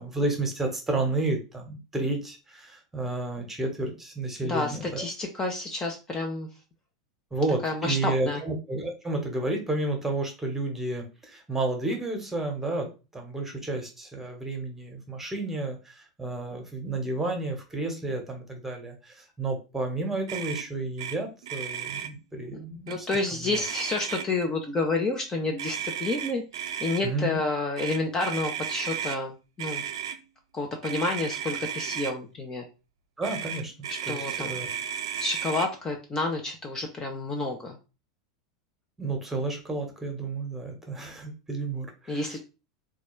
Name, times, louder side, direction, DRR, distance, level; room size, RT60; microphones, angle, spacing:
voice 1, 0.0-5.0 7.3-23.1 23.4-23.6 27.0-27.4 33.2-33.7 34.1-34.7 39.0-42.2, right 2 dB, 10° right, 3 dB, 1.2 m, -31 dB
voice 2, 4.4-6.5 7.6-8.4 22.5-22.6 22.9-26.4 26.8-29.8 30.5-32.6 33.9-34.6 35.2-37.8 42.1-42.4, left 2 dB, 20° left, 2 dB, 0.8 m, -29 dB
Motor vehicle (road), 20.3-20.7 21.0-21.2 21.4-22.1 22.9-23.2 23.5-24.4 25.6-27.0 27.8-29.2 29.6-30.2 30.8-32.1 33.2-35.7, right 8 dB, 65° right, 0.4 m, -34 dB
4.0 x 2.4 x 3.1 m, 0.30 s
figure-of-eight pair, 85°, 3 cm